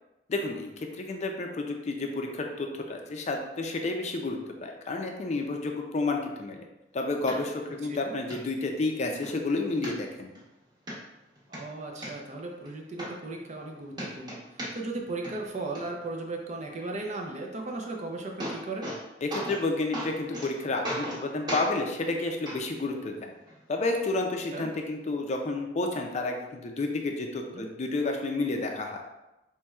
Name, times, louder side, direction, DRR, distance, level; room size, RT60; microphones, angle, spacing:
voice 1, 0.3-6.6 6.9-10.3 19.2-23.3 23.7-29.0, left 2 dB, 40° left, 3 dB, 0.4 m, -30 dB
sound 1, 7.3-7.4 7.8-7.9 8.3-8.4 8.9-9.3 9.8-10.4 10.9-11.0 11.4-12.1 12.7-12.8 13.0-13.7 13.9-15.0 15.2-15.8 17.8-17.9 18.2-19.0 19.3-19.6 19.9-20.5 20.8-21.2 21.5-21.7 22.5-22.6 23.5-23.6, equal, 25° right, 1.0 m, -35 dB
voice 2, 11.5-18.9 24.5-24.7 27.5-27.7, right 2 dB, 40° right, 2 dB, 0.5 m, -36 dB
4.3 x 3.0 x 2.3 m, 0.96 s
head